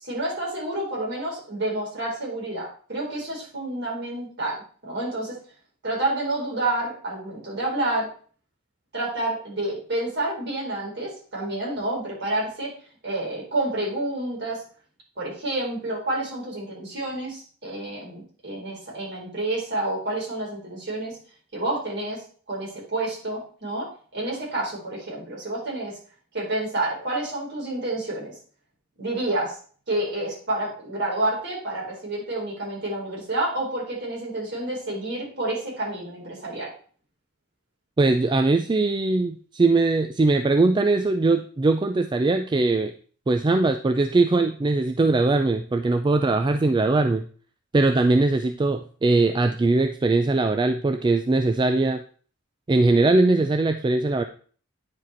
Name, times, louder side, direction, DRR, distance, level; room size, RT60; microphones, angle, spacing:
voice 1, 0.0-4.5 4.8-5.4 5.8-8.1 8.9-12.7 13.0-14.6 15.2-21.2 21.5-22.2 22.5-26.0 26.3-28.4 29.0-29.6 29.9-36.7, right 2 dB, 55° right, -5 dB, 4.5 m, -29 dB
voice 2, 38.0-42.9 43.3-47.2 47.7-52.0 52.7-54.2, right 3 dB, 20° right, 7 dB, 0.3 m, -21 dB
9.6 x 4.8 x 4.4 m, 0.43 s
head